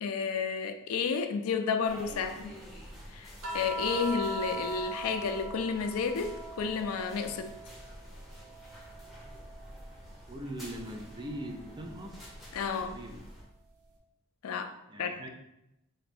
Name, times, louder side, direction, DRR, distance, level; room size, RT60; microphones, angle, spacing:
voice 1, 0.0-2.6 3.1-7.6 12.5-13.0 14.4-15.2, left 5 dB, 75° left, 8 dB, 0.4 m, -32 dB
sound 1, 1.8-13.4, equal, ahead, 0.7 m, -49 dB
sound 2, 3.4-7.9 8.3-9.9 11.4-11.6, equal, 75° right, 0.7 m, -40 dB
voice 2, 10.3-12.2 12.7-13.3 14.9-15.3, right 1 dB, 20° right, 3 dB, 0.4 m, -41 dB
3.1 x 2.5 x 4.2 m, 0.85 s
head